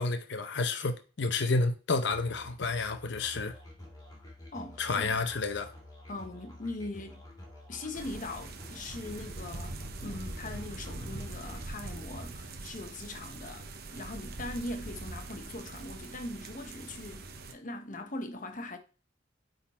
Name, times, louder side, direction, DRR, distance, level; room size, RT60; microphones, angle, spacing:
voice 1, 0.0-3.5 4.8-5.7, left 3 dB, 65° left, 0.8 m, -30 dB
Musical instrument, 2.1-11.7, left 1 dB, 20° left, 2.2 m, -49 dB
voice 2, 4.5-5.1 6.1-7.2 7.7-13.7 13.9-18.8, left 2 dB, 40° left, 1.0 m, -41 dB
sound 1, 7.9-17.5, right 2 dB, 55° right, 0.9 m, -43 dB
8.4 x 4.0 x 4.4 m
head